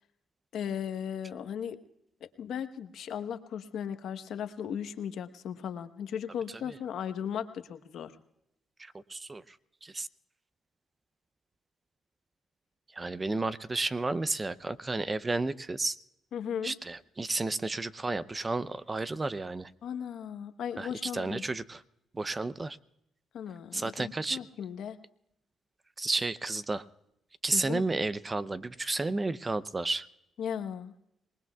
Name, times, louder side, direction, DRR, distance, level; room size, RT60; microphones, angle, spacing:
voice 1, 0.5-1.8 2.2-8.1 16.3-16.7 19.8-21.4 23.3-25.0 27.5-27.8 30.4-30.9, left 8 dB, 70° left, 9 dB, 1.1 m, -36 dB
voice 2, 9.1-9.4 9.9-10.1 13.0-15.9 16.6-19.7 20.8-20.9 21.1-21.8 22.2-22.8 23.7-24.4 26.0-26.8 27.4-30.1, right 3 dB, 25° right, 15 dB, 0.6 m, -32 dB
26.0 x 20.0 x 2.4 m, 0.81 s
cardioid pair, 90°, 0 cm